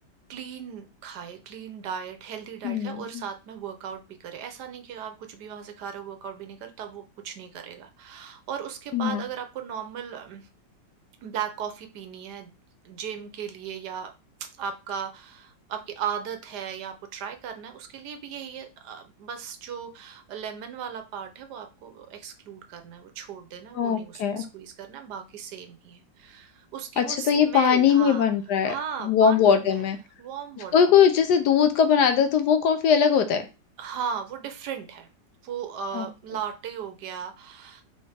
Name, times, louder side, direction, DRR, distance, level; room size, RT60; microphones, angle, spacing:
voice 1, 0.3-10.5 11.2-12.5 12.8-14.1 14.4-28.2 28.6-29.8 30.2-30.7 33.8-35.1 35.4-37.8, right 8 dB, 75° right, 6 dB, 1.2 m, -37 dB
voice 2, 2.6-3.2 8.9-9.2 23.8-24.4 27.0-28.7 29.0-30.0 30.7-33.5 35.9-36.1, left 7 dB, 75° left, 8 dB, 1.1 m, -20 dB
4.2 x 3.4 x 3.3 m, 0.30 s
omnidirectional pair, 1.9 m